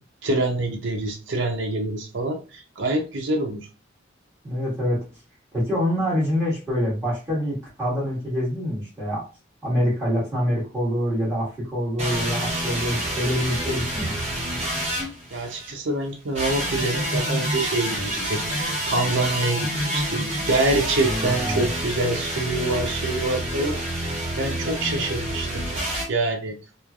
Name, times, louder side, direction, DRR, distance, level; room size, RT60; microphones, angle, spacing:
voice 1, 0.2-3.6 15.3-18.0 18.3-25.6 26.1-26.5, right 2 dB, 70° right, 2 dB, 0.6 m, -26 dB
voice 2, 4.4-5.0 5.5-9.2 9.6-14.2 21.0-21.7, equal, 15° right, -8 dB, 1.5 m, -25 dB
sound 1, 12.0-15.7 16.3-26.0, equal, 35° right, 1.3 m, -28 dB
3.1 x 2.3 x 2.3 m, 0.33 s
head